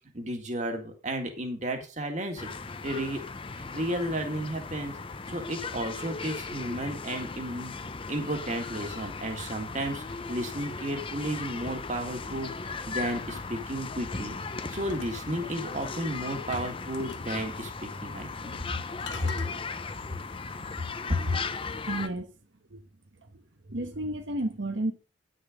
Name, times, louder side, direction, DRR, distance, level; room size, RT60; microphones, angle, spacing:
voice 1, 0.1-2.5 2.8-3.2 3.5-4.9 5.3-7.7 8.1-14.3 14.7-18.5 19.2-19.3 21.1-21.4, right 1 dB, 40° right, 2.0 m, -33 dB
sound 1, 2.4-22.1, left 4 dB, 30° left, 0.6 m, -37 dB
sound 2, 14.7-16.0 16.5-17.5 18.4-18.7 19.0-19.5, left 4 dB, 75° left, 1.3 m, -44 dB
voice 2, 21.9-22.3 22.7-22.8 23.2-23.4 23.7-24.9, right 1 dB, 75° right, 1.2 m, -32 dB
10.0 x 6.7 x 5.2 m
head